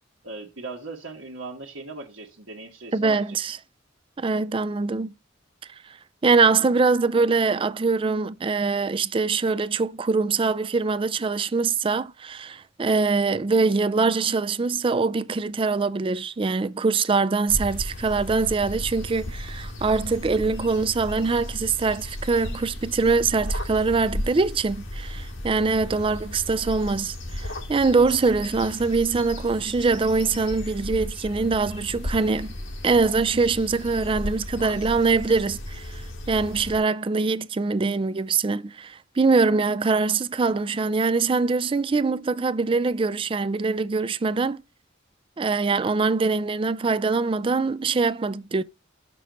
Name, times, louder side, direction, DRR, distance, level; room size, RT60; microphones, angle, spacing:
voice 1, 0.2-3.4, right 3 dB, 80° right, 1.3 m, -38 dB
voice 2, 2.9-3.6 4.2-5.1 6.2-32.5 32.8-44.6 45.4-48.6, right 4 dB, 25° right, 0.4 m, -23 dB
sound 1, 17.5-36.8, left 1 dB, 85° left, 2.1 m, -35 dB
6.1 x 6.0 x 5.1 m
head